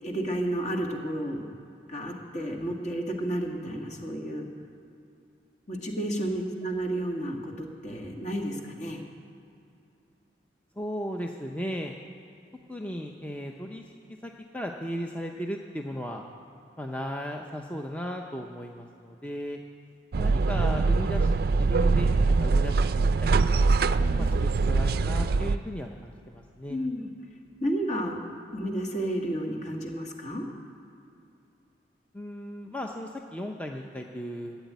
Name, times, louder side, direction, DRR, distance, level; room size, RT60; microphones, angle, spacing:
voice 1, 0.0-1.5 1.9-4.5 5.7-9.0 24.0-24.4 26.7-27.1 27.6-28.2 28.5-30.4, right 1 dB, 40° left, 1 dB, 1.7 m, -31 dB
voice 2, 6.2-6.5 10.8-11.9 12.7-13.8 14.2-16.2 16.8-19.6 20.2-23.7 24.2-26.8 32.1-34.7, equal, 10° left, 1 dB, 0.6 m, -36 dB
sound 1, 20.1-25.6, right 3 dB, 55° right, 0.4 m, -23 dB
13.0 x 8.1 x 9.4 m, 2.7 s
head